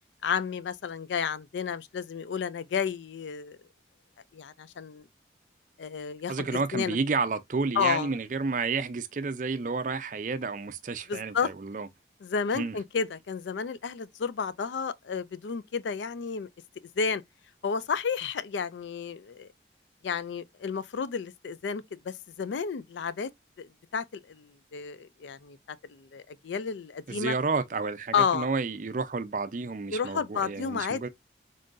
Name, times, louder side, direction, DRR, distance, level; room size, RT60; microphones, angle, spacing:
voice 1, 0.2-3.6 4.3-5.0 5.8-6.3 6.7-7.0 7.8-8.1 11.1-11.5 12.2-16.5 17.0-17.2 17.6-19.5 20.0-23.3 23.6-25.6 25.9-27.3 28.1-28.5 29.9-31.0, left 6 dB, 85° left, 0.4 m, -31 dB
voice 2, 6.3-11.9 12.5-12.8 27.1-31.1, right 4 dB, 45° right, 0.4 m, -31 dB
3.8 x 3.7 x 2.5 m
head